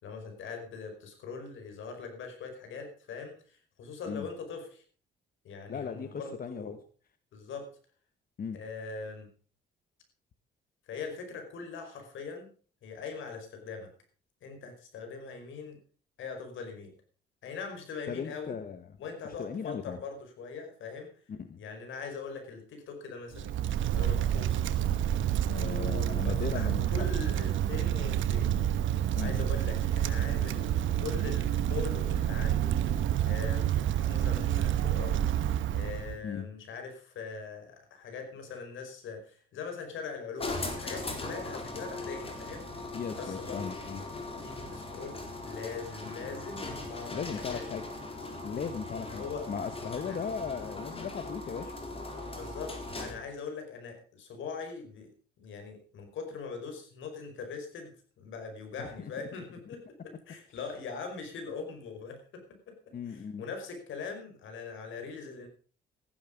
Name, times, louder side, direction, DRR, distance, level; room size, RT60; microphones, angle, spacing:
voice 1, 0.0-4.8 5.4-6.8 7.3-7.7 8.5-9.3 10.9-12.5 12.8-13.9 14.4-15.8 16.2-16.9 17.4-18.5 19.0-21.1 21.6-23.5 23.9-24.7 25.4-28.6 29.2-30.7 31.0-32.8 33.3-35.2 35.7-42.8 43.1-43.7 44.4-47.6 49.0-49.5 50.1-50.2 52.3-55.1 55.4-62.8 63.1-65.5, left 5 dB, 75° left, 5 dB, 5.2 m, -41 dB
voice 2, 5.7-6.8 8.4-8.6 18.1-19.0 19.4-20.0 21.3-21.6 25.5-27.1 29.2-29.4 36.2-36.5 42.9-44.0 47.1-47.9 48.4-51.7 58.8-59.1 62.9-63.4, left 6 dB, 45° left, 10 dB, 1.3 m, -37 dB
Wind, 23.3-36.2, right 11 dB, 75° right, 1.2 m, -28 dB
sound 1, 40.4-53.3, left 2 dB, 30° left, 4.1 m, -39 dB
15.0 x 11.5 x 5.3 m, 0.41 s
cardioid pair, 90°, 20 cm